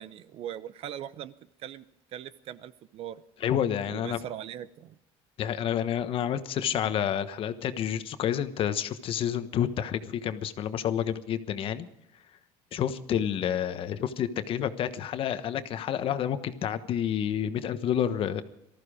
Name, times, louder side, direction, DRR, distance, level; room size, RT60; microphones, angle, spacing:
voice 1, 0.0-1.3 1.6-1.9 2.1-3.2 3.9-5.0, right 10 dB, 50° right, 16 dB, 0.8 m, -40 dB
voice 2, 3.4-4.2 5.4-11.9 12.7-18.4, left 9 dB, 50° left, 11 dB, 1.2 m, -29 dB
19.0 x 14.0 x 5.0 m, 0.79 s
cardioid pair, 130°, 12 cm